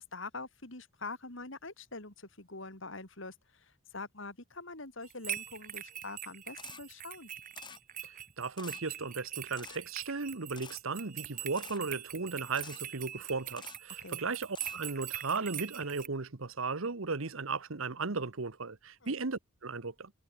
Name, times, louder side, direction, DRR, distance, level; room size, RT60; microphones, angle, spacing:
voice 1, 0.0-7.3 14.0-14.2 19.0-19.1, left 3 dB, 65° left, 4.2 m, -44 dB
sound 1, 5.0-16.1, right 11 dB, 40° right, 1.6 m, -43 dB
Camera, 6.6-6.8 7.6-7.8 8.6-8.8 9.6-9.8 10.6-10.8 11.6-11.8 12.6-12.8 13.6-13.8 14.6-14.8, left 6 dB, 20° left, 3.0 m, -48 dB
voice 2, 8.4-20.1, right 4 dB, 75° right, 1.2 m, -36 dB
head